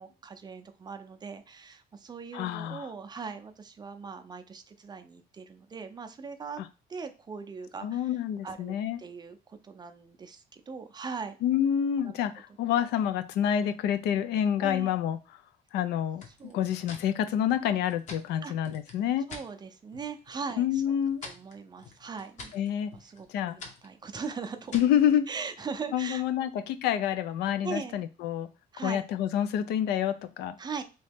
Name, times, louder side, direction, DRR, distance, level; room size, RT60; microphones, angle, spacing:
voice 1, 0.0-6.6 6.9-8.1 8.4-11.4 12.0-12.1 14.6-14.9 16.4-16.6 18.4-18.5 19.3-21.0 21.2-22.5 22.9-24.8 25.3-26.5 27.6-27.9 28.7-29.0 30.6-30.8, right 5 dB, 25° right, 7 dB, 0.5 m, -40 dB
voice 2, 2.3-2.9 6.6-6.7 7.8-9.0 11.4-15.2 15.7-16.2 16.5-19.3 20.6-21.3 22.5-22.9 23.3-23.6 24.7-25.2 25.9-28.5 28.8-30.6, left 10 dB, 80° left, 10 dB, 0.4 m, -28 dB
sound 1, 16.2-19.5 19.9-20.5 20.8-25.0, left 3 dB, 45° left, 0.9 m, -48 dB
3.0 x 2.7 x 3.4 m, 0.31 s
cardioid pair, 110°, 17 cm